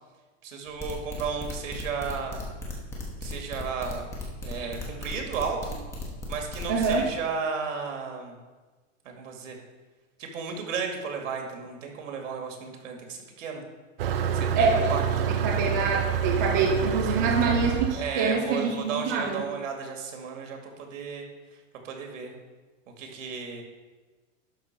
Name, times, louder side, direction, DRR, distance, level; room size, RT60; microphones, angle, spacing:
voice 1, 0.4-2.4 3.2-4.1 4.4-5.8 6.3-8.4 9.1-9.6 10.2-13.6 14.3-15.0 17.9-21.2 21.8-22.3 23.0-23.6, right 6 dB, 75° right, 2 dB, 2.3 m, -34 dB
sound 1, 0.7-7.0, left 2 dB, 5° left, 1.0 m, -36 dB
voice 2, 6.7-7.0 14.5-14.9 15.3-19.5, right 4 dB, 15° right, 0 dB, 0.3 m, -25 dB
Motor vehicle (road), 14.0-19.1, right 8 dB, 45° right, 0.7 m, -28 dB
11.5 x 4.1 x 5.9 m, 1.3 s
supercardioid pair, 170°, 39 cm